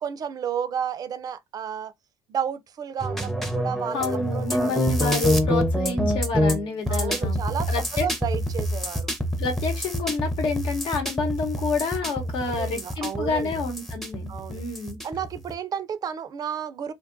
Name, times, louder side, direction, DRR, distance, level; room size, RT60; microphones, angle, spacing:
voice 1, 0.0-1.9 2.3-4.8 6.9-7.7 8.0-9.1 12.6-13.6 14.3-14.6 15.0-16.9, right 8 dB, 45° right, 0.4 m, -32 dB
sound 1, 3.0-15.5, equal, ahead, 0.6 m, -27 dB
voice 2, 3.9-7.4 7.7-8.1 9.4-15.0, left 4 dB, 70° left, 0.9 m, -29 dB
2.6 x 2.2 x 2.5 m
supercardioid pair, 75°, 9 cm